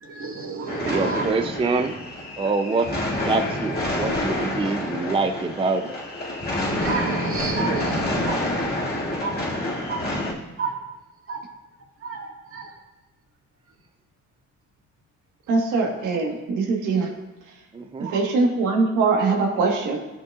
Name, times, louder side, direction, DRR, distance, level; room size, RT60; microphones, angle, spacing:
voice 1, 0.0-1.3 2.6-2.8 6.5-9.5 9.9-10.1 10.6-10.7 11.3-11.4 12.0-12.7 15.7-15.9 18.0-18.2, right 3 dB, 45° right, 0 dB, 1.8 m, -30 dB
sound 1, 0.7-10.3, left 1 dB, 30° left, 2.3 m, -28 dB
voice 2, 0.8-2.0 2.4-5.9 17.7-18.1, right 3 dB, 20° right, 6 dB, 0.5 m, -25 dB
voice 3, 15.5-17.1 18.1-20.0, right 4 dB, 85° right, 1 dB, 1.4 m, -22 dB
13.0 x 5.7 x 2.4 m, 1.1 s
cardioid pair, 90°, 30 cm